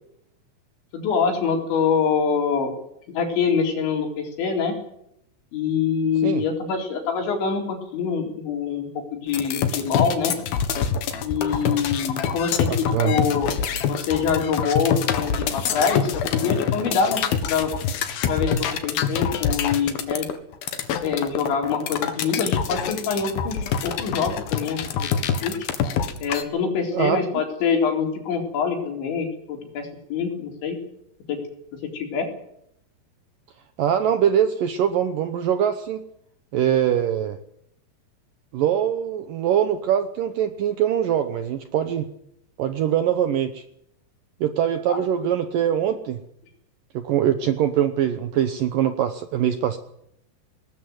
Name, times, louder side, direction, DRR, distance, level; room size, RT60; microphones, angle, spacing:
voice 1, 0.9-2.7 3.1-4.7 5.5-10.3 11.2-13.6 13.9-17.2 17.5-17.7 18.3-20.3 21.0-25.1 25.4-25.5 26.2-30.8 31.3-31.4 31.9-32.3 44.9-45.0, left 6 dB, 85° left, 2 dB, 6.3 m, -25 dB
sound 1, 9.3-26.4, left 7 dB, 65° left, 3.2 m, -25 dB
voice 2, 12.7-13.2 26.9-27.2 33.8-36.0 36.5-37.4 38.5-42.1 42.6-43.6 44.4-46.2 46.9-49.8, right 9 dB, 75° right, 9 dB, 2.1 m, -23 dB
20.0 x 19.5 x 7.9 m, 0.75 s
omnidirectional pair, 5.1 m